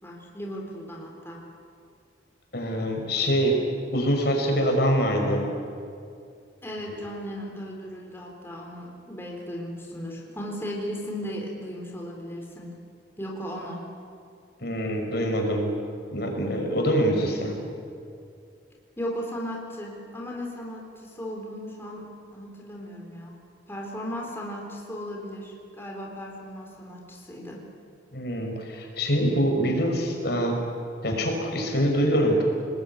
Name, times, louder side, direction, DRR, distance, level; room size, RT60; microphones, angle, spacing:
voice 1, 0.0-1.4 6.6-12.7 13.2-13.8 19.0-23.3 23.7-27.6, equal, 15° left, -1 dB, 4.0 m, -36 dB
voice 2, 2.5-5.5 14.6-15.7 16.1-17.6 28.1-30.6 31.0-32.4, equal, 60° left, 2 dB, 5.7 m, -24 dB
29.0 x 20.0 x 9.6 m, 2.4 s
head